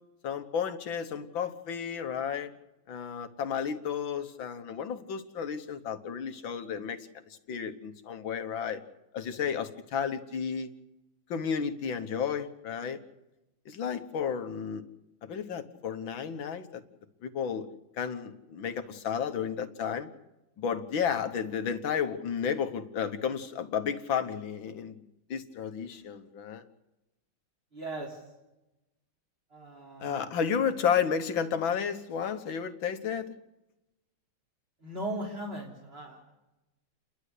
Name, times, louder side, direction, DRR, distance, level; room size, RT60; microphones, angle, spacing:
voice 1, 0.2-2.5 2.9-8.8 9.1-10.7 11.3-13.0 13.7-14.8 15.2-16.8 17.2-17.7 18.0-20.1 20.6-25.0 25.3-26.6 30.0-33.4, left 7 dB, 70° left, 8 dB, 1.9 m, -32 dB
voice 2, 27.7-28.2 29.5-30.3 34.8-36.3, right 1 dB, 25° right, -3 dB, 3.6 m, -38 dB
30.0 x 11.5 x 8.3 m, 0.97 s
omnidirectional pair, 2.3 m